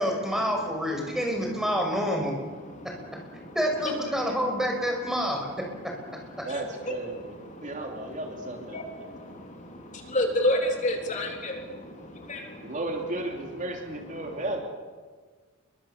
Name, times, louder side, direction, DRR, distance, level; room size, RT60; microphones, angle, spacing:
voice 1, 0.0-2.3 2.8-2.9 3.5-5.5 5.8-5.9, equal, ahead, 1 dB, 6.0 m, -27 dB
voice 2, 6.4-7.4 7.6-8.8 12.6-14.6, right 2 dB, 40° right, 2 dB, 3.0 m, -34 dB
voice 3, 7.5-7.9 8.7-12.7, left 1 dB, 35° left, 2 dB, 3.6 m, -30 dB
28.0 x 23.5 x 7.3 m, 1.5 s
head